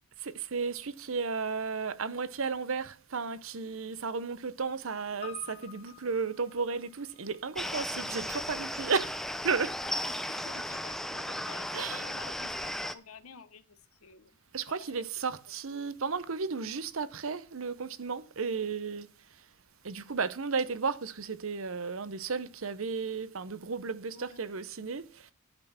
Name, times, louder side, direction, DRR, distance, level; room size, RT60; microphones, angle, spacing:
voice 1, 0.2-9.8 11.7-12.0 14.5-19.1 19.8-25.3, right 5 dB, 70° right, 0.8 m, -34 dB
Piano, 5.2-9.7 10.0-10.1, left 11 dB, 30° left, 1.8 m, -51 dB
sound 1, 7.5-12.9, left 1 dB, ahead, 0.5 m, -35 dB
voice 2, 9.8-14.4 14.8-14.9 15.2-15.3 18.4-18.6 24.1-24.6, left 5 dB, 85° left, 1.0 m, -51 dB
10.5 x 5.8 x 5.6 m
head